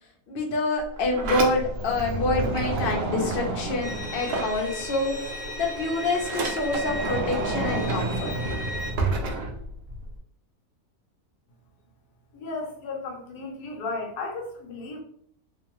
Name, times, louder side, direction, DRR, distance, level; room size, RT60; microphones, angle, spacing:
voice 1, 0.3-5.1 5.6-8.6, left 2 dB, 55° left, 0 dB, 0.6 m, -27 dB
Sliding door, 0.8-5.1 5.4-10.2, right 2 dB, 85° right, 0.5 m, -30 dB
Bowed string instrument, 3.8-8.9, equal, 20° right, 0.8 m, -36 dB
voice 2, 12.3-15.0, left 3 dB, 90° left, 1 dB, 1.3 m, -34 dB
2.9 x 2.1 x 2.9 m, 0.63 s
omnidirectional pair, 1.7 m